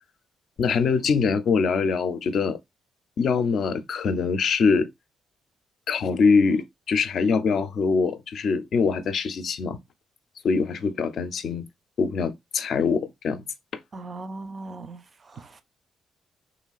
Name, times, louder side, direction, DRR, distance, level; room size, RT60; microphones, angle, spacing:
voice 1, 0.6-2.6 3.2-4.9 5.9-9.8 10.4-11.6 12.0-13.4, left 5 dB, 60° left, 0.4 m, -23 dB
voice 2, 13.9-15.6, right 2 dB, 35° right, 0.4 m, -39 dB
3.0 x 2.4 x 2.3 m
cardioid pair, 95°, 0 cm